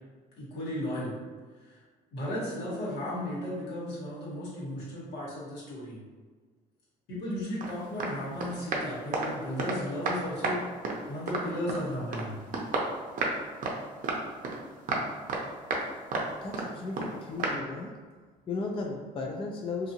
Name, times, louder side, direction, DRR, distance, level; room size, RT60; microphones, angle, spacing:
voice 1, 0.4-1.2 1.7-1.8 2.1-6.0 7.1-10.6 11.1-12.3, left 1 dB, 75° left, -7 dB, 1.3 m, -35 dB
sound 1, 7.6-7.7 8.0-8.1 8.4-9.8 10.1-10.6 10.8-11.8 12.1-12.3 12.5-13.4 13.6-13.8 14.0-14.6 14.9-15.4 15.7-15.8 16.1-16.7 17.0-17.1 17.4-17.6, right 3 dB, 50° right, 0.6 m, -31 dB
voice 2, 16.4-17.9 18.5-19.9, left 3 dB, 30° left, 0 dB, 0.3 m, -35 dB
2.6 x 2.6 x 2.7 m, 1.4 s
cardioid pair, 95°, 18 cm